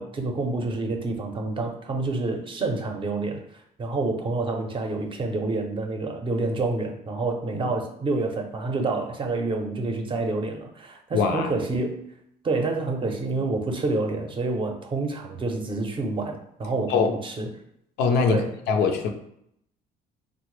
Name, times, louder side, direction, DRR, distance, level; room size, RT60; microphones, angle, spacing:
voice 1, 0.0-12.0 12.4-17.5 18.3-18.5, right 3 dB, 30° right, 3 dB, 0.6 m, -28 dB
voice 2, 11.1-11.5 16.9-17.1 18.0-19.1, left 5 dB, 80° left, 5 dB, 0.5 m, -23 dB
3.5 x 2.0 x 3.1 m, 0.74 s
cardioid pair, 110°, 17 cm